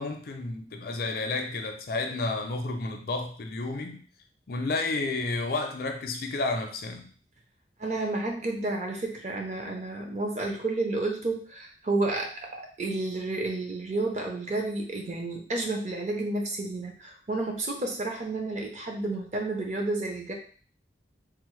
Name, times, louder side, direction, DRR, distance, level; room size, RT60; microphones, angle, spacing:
voice 1, 0.0-4.0 4.5-7.1, left 3 dB, 55° left, 4 dB, 0.4 m, -31 dB
voice 2, 7.8-20.3, right 2 dB, 40° right, 2 dB, 0.6 m, -31 dB
3.4 x 2.0 x 3.1 m, 0.43 s
head